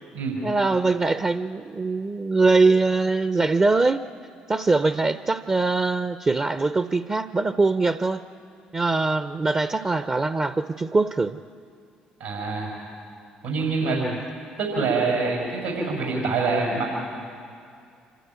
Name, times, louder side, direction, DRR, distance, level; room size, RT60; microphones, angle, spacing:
voice 1, 0.4-4.0 4.5-8.2 8.7-11.4 13.8-14.2, right 3 dB, 25° right, 11 dB, 0.6 m, -22 dB
voice 2, 12.2-12.7 13.4-14.0 14.6-17.0, right 4 dB, 85° right, -3 dB, 6.2 m, -25 dB
26.0 x 13.0 x 9.5 m, 2.4 s
hypercardioid pair, 50°, 4 cm